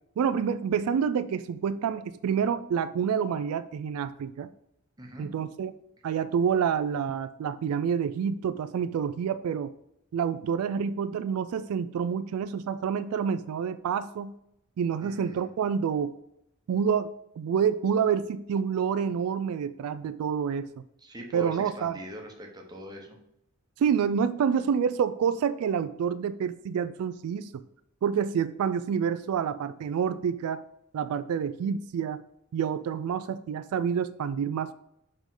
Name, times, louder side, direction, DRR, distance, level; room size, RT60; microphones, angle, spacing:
voice 1, 0.2-4.5 5.2-5.7 6.0-9.7 10.1-14.3 14.8-16.1 16.7-20.7 21.3-22.0 23.8-27.6 28.0-30.6 30.9-32.2 32.5-34.7, right 7 dB, 85° right, 13 dB, 0.3 m, -28 dB
voice 2, 5.0-5.3 15.0-15.5 21.0-23.2, equal, 20° right, 1 dB, 1.0 m, -42 dB
5.2 x 5.1 x 3.7 m, 0.79 s
head